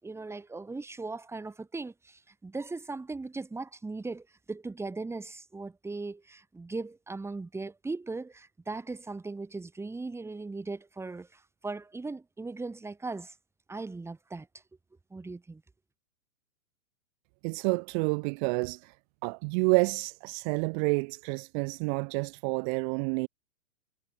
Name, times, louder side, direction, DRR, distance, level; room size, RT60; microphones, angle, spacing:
voice 1, 0.0-13.4 13.7-14.5 15.1-15.6, right 3 dB, 5° right, 5.5 m, -38 dB
voice 2, 17.4-18.9 19.2-23.3, right 36 dB, 40° right, 1.8 m, -29 dB
hypercardioid pair, 140°, 38 cm